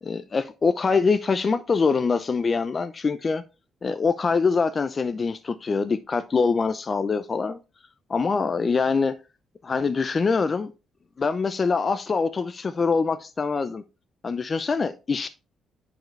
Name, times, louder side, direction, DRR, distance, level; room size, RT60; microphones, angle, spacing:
voice 1, 0.0-3.4 3.8-7.6 8.1-9.1 9.6-10.7 11.2-13.8 14.2-15.3, left 4 dB, 35° left, 0.6 m, -24 dB
10.5 x 4.8 x 3.3 m
cardioid pair, 90°, 0 cm